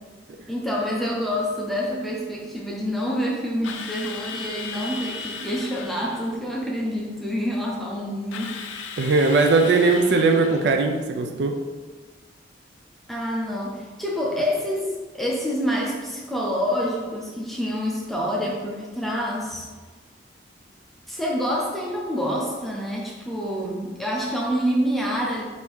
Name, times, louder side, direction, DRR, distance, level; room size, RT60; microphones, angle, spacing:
voice 1, 0.5-8.5 13.1-19.7 21.1-25.4, equal, ahead, -3 dB, 0.5 m, -27 dB
Drill, 3.6-6.3 8.3-10.8, left 5 dB, 85° left, 0.4 m, -36 dB
voice 2, 9.0-11.5, right 3 dB, 60° right, 4 dB, 0.3 m, -19 dB
3.5 x 2.6 x 4.5 m, 1.4 s
head